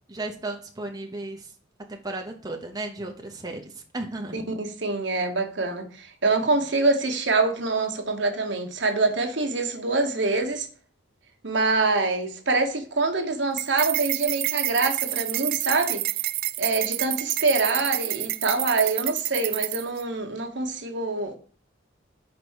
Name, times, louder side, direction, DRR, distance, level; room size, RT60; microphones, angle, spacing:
voice 1, 0.1-1.5 1.9-3.6 3.9-4.4, right 2 dB, 20° right, 0.8 m, -34 dB
voice 2, 4.3-10.7 11.4-16.0 16.6-21.4, right 3 dB, 65° right, 1.2 m, -25 dB
sound 1, 13.6-20.0, right 16 dB, 50° right, 0.3 m, -28 dB
5.1 x 4.7 x 6.2 m
head